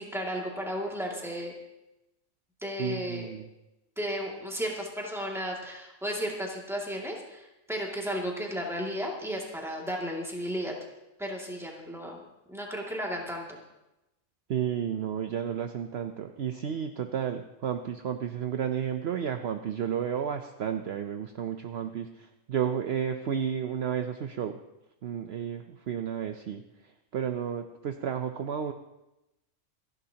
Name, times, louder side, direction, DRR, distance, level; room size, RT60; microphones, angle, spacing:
voice 1, 0.0-1.5 2.6-3.3 4.0-10.7 11.2-12.2 12.5-13.6, equal, ahead, -2 dB, 2.2 m, -34 dB
voice 2, 2.8-3.5 14.5-24.6 25.0-28.7, right 8 dB, 60° right, 7 dB, 0.8 m, -32 dB
26.5 x 11.0 x 2.9 m, 0.95 s
omnidirectional pair, 1.4 m